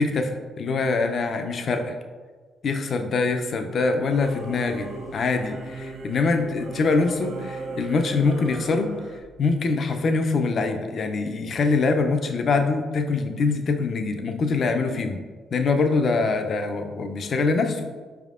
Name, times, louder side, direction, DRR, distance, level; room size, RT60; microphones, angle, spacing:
voice 1, 0.0-2.0 2.6-8.9 9.4-15.2 15.5-17.9, left 4 dB, 55° left, 6 dB, 0.4 m, -24 dB
Singing / Musical instrument, 4.1-9.2, right 3 dB, 65° right, 0.5 m, -37 dB
4.9 x 3.4 x 2.4 m, 1.4 s
cardioid pair, 90°, 0 cm